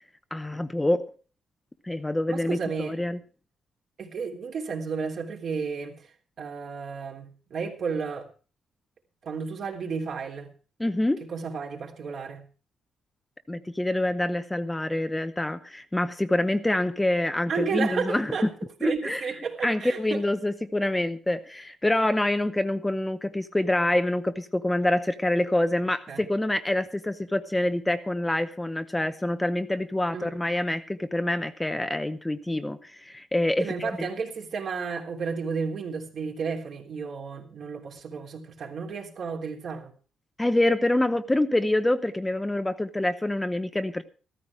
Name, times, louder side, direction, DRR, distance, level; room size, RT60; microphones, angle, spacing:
voice 1, 0.3-1.1 1.8-3.2 10.8-11.2 13.5-18.3 18.8-19.2 19.6-34.1 40.4-44.0, left 1 dB, 10° left, 10 dB, 0.7 m, -26 dB
voice 2, 2.3-2.9 4.0-6.1 6.4-8.3 9.2-10.5 11.2-12.4 17.5-18.5 18.8-20.2 26.1-26.2 30.1-30.3 33.6-39.9, right 5 dB, 55° right, 2 dB, 3.3 m, -32 dB
15.0 x 14.0 x 4.8 m, 0.37 s
cardioid pair, 135°, 0 cm